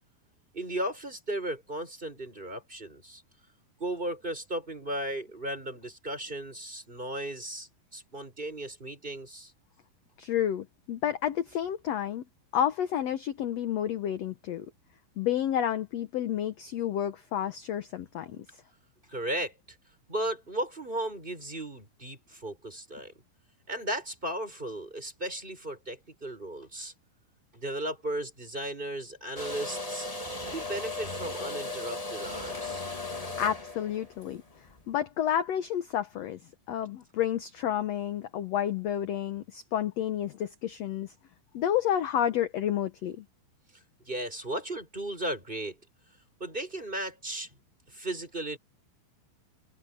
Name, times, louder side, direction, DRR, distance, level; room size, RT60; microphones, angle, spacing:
voice 1, 0.5-3.2 3.8-9.5 19.1-19.5 20.1-23.1 23.7-26.9 27.5-30.1 30.5-32.8 44.1-45.8 46.4-47.5 47.9-48.6, right 1 dB, 15° right, 6.4 m, -35 dB
voice 2, 10.2-12.2 12.5-14.7 15.2-18.4 33.4-34.4 34.9-36.4 36.7-41.1 41.5-43.2, left 10 dB, 70° left, 1.6 m, -30 dB
sound 1, 29.3-34.8, left 2 dB, 30° left, 0.6 m, -37 dB
omnidirectional pair, 4.2 m